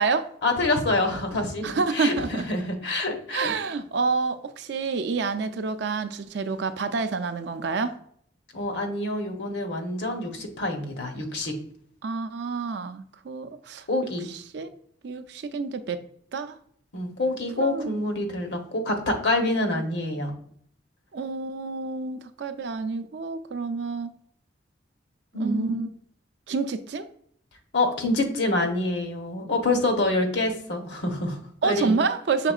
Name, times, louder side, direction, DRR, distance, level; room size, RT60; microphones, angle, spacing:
voice 1, 0.4-3.5 8.5-11.6 13.9-14.3 16.9-20.3 25.3-25.7 27.7-31.9, left 2 dB, 65° left, 4 dB, 0.9 m, -26 dB
voice 2, 1.6-2.4 3.3-8.0 12.0-14.7 15.0-16.0 16.3-16.6 17.6-17.9 21.1-24.1 25.4-25.9 26.5-27.1 31.6-32.5, right 4 dB, 60° right, 10 dB, 0.4 m, -28 dB
5.8 x 3.6 x 2.3 m, 0.63 s
head